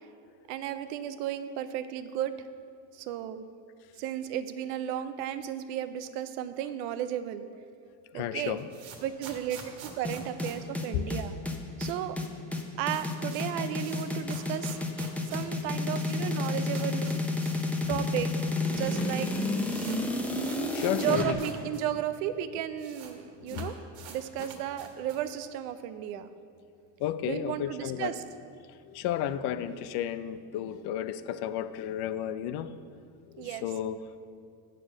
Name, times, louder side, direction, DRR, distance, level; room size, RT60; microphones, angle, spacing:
voice 1, 0.5-2.5 2.9-3.4 4.0-7.4 8.1-8.6 9.0-11.3 11.8-12.2 12.8-14.8 15.3-17.2 17.9-19.3 21.0-23.8 24.1-26.3 27.2-28.2 33.4-33.6, right 11 dB, 90° right, 11 dB, 0.7 m, -34 dB
voice 2, 8.1-8.7 10.9-11.1 20.2-20.3 20.6-21.3 23.4-23.7 24.4-24.5 26.1-26.2 27.0-28.2 28.7-32.8 33.3-34.0, left 10 dB, 55° left, 13 dB, 0.6 m, -33 dB
sound 1, 8.3-11.6 11.8-11.9 12.2-12.3 12.5-17.7 18.0-18.1 18.8-18.9 19.1-21.8 22.1-22.2 22.4-23.1 23.4-25.3, right 6 dB, 75° right, 1.6 m, -47 dB
sound 2, 10.0-21.3, left 2 dB, 5° left, 0.8 m, -30 dB
7.5 x 6.5 x 6.4 m, 2.3 s
supercardioid pair, 115°, 47 cm